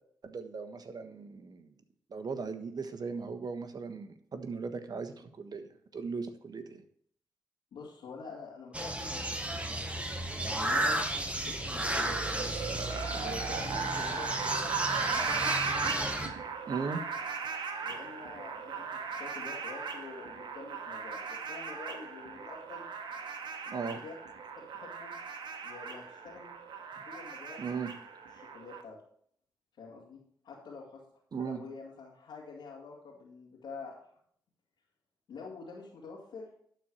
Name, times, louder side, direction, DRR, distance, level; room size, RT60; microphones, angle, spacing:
voice 1, 0.2-1.7 2.1-6.8 16.7-17.0 23.7-24.0 27.6-27.9 31.3-31.6, right 5 dB, 55° right, 8 dB, 1.3 m, -38 dB
voice 2, 7.7-9.9 10.3-11.0 11.5-14.6 15.1-16.1 17.8-22.9 23.6-24.1 24.6-25.1 25.6-26.5 27.1-27.6 28.3-29.0 29.8-30.2 30.4-31.0 31.4-34.0 35.3-36.5, left 4 dB, 85° left, -6 dB, 2.4 m, -47 dB
sound 1, 8.7-16.3, right 1 dB, 15° right, 1.5 m, -33 dB
sound 2, 11.8-28.8, right 5 dB, 75° right, 1.2 m, -38 dB
11.5 x 4.5 x 6.3 m, 0.64 s
supercardioid pair, 50°, 8 cm